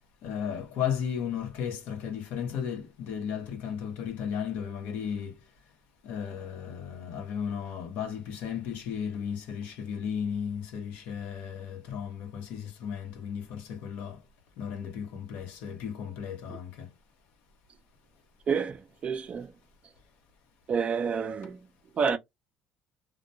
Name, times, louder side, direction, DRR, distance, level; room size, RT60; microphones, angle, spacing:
voice 1, 0.2-5.4 6.0-14.2 14.6-16.9, left 8 dB, 80° left, 0.8 m, -35 dB
voice 2, 18.5-19.5 20.7-21.7 21.9-22.2, right 6 dB, 40° right, 0.4 m, -29 dB
2.2 x 2.1 x 2.6 m
supercardioid pair, 90°, 3 cm